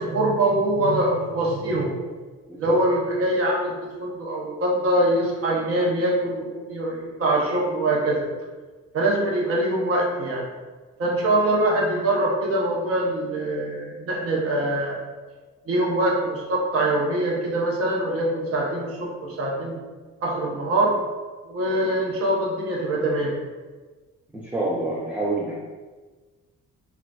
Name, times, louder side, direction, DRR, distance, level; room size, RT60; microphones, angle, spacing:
voice 1, 0.0-1.9 2.6-8.3 8.9-10.4 11.0-15.0 15.7-19.8 20.2-21.0 21.4-23.3, right 1 dB, 50° right, -3 dB, 0.8 m, -23 dB
voice 2, 24.3-25.5, right 2 dB, 5° right, -5 dB, 0.4 m, -27 dB
3.7 x 2.3 x 2.3 m, 1.3 s
cardioid pair, 90°, 30 cm